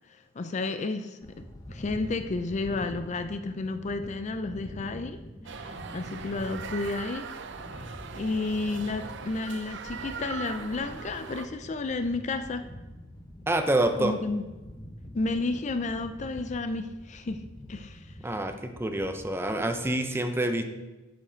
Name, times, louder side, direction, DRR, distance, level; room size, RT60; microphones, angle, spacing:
voice 1, 0.1-5.2 5.5-7.3 7.7-12.6 14.0-14.4 15.1-17.4 17.7-18.1, left 3 dB, 35° left, 9 dB, 0.4 m, -32 dB
sound 1, 1.2-19.9, equal, 20° left, 0.8 m, -45 dB
sound 2, 5.4-11.5, right 5 dB, 65° right, 0.6 m, -40 dB
voice 2, 13.5-14.1 18.2-20.6, right 1 dB, 10° right, 6 dB, 0.6 m, -27 dB
7.4 x 6.9 x 5.0 m, 1.1 s
head